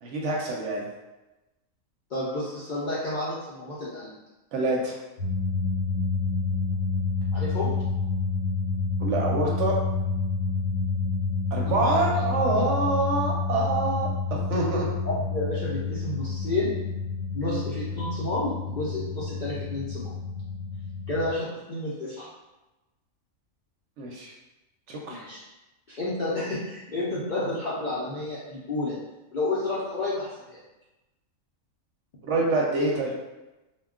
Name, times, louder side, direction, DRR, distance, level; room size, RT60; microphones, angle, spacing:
voice 1, 0.0-0.9 4.5-4.9 9.0-9.7 11.5-14.1 14.5-14.9 17.4-17.6 24.0-24.3 24.9-25.2 32.2-33.1, right 2 dB, 70° right, -1 dB, 0.8 m, -26 dB
voice 2, 2.1-4.1 7.3-7.7 11.8-12.2 15.0-16.7 17.3-20.1 21.1-22.3 25.1-25.4 25.9-28.9 29.3-30.6, left 2 dB, 60° left, -9 dB, 0.5 m, -30 dB
sound 1, 5.2-21.3, left 4 dB, 75° left, 1.1 m, -29 dB
2.2 x 2.2 x 3.5 m, 1.0 s
omnidirectional pair, 1.4 m